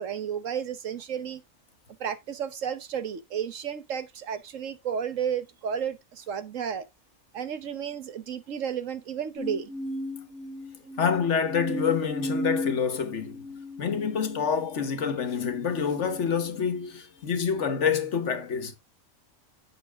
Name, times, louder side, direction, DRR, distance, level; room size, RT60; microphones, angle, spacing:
voice 1, 0.0-1.4 2.0-6.8 7.3-9.7, right 8 dB, 70° right, 1.3 m, -32 dB
sound 1, 9.4-16.8 17.4-17.9, left 1 dB, 5° right, 2.0 m, -36 dB
voice 2, 11.0-13.5 13.8-18.8, left 6 dB, 60° left, 1.4 m, -27 dB
8.8 x 6.3 x 3.5 m
omnidirectional pair, 1.4 m